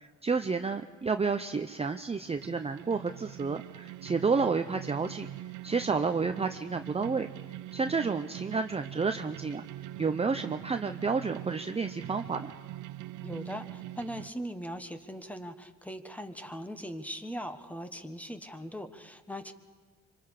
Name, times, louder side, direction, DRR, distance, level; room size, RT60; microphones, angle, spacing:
voice 1, 0.0-5.3 5.6-7.3 7.7-9.7 10.0-12.5, right 4 dB, 20° right, 7 dB, 0.7 m, -30 dB
sound 1, 2.3-14.3, right 15 dB, 85° right, 0.5 m, -43 dB
voice 2, 13.2-19.5, equal, 5° left, 8 dB, 1.4 m, -40 dB
25.5 x 25.0 x 4.9 m, 1.5 s
cardioid pair, 90°, 30 cm